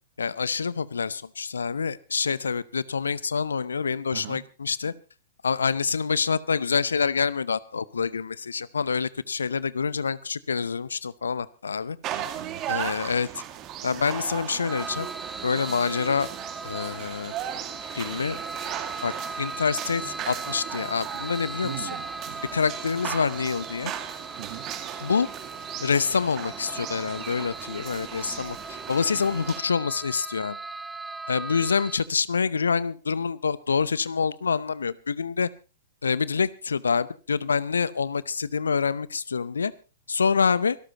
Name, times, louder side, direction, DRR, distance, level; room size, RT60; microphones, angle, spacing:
voice 1, 0.2-4.9 5.4-12.0 12.7-13.3 13.8-15.1 15.4-16.3 16.6-17.3 17.9-18.4 19.0-19.1 19.4-21.7 22.5-23.9 25.0-25.3 25.8-28.6 28.9-30.6 31.3-35.5 36.0-39.7 40.1-40.8, left 5 dB, 70° left, 0.7 m, -26 dB
voice 2, 4.1-4.5 12.1-12.6 21.6-22.4 24.4-24.7, right 14 dB, 50° right, 1.2 m, -40 dB
sound 1, 12.0-29.6, right 11 dB, 30° right, 2.0 m, -37 dB
sound 2, 14.7-32.1, right 3 dB, 10° right, 0.7 m, -39 dB
26.0 x 12.5 x 3.0 m
figure-of-eight pair, 105°, 0 cm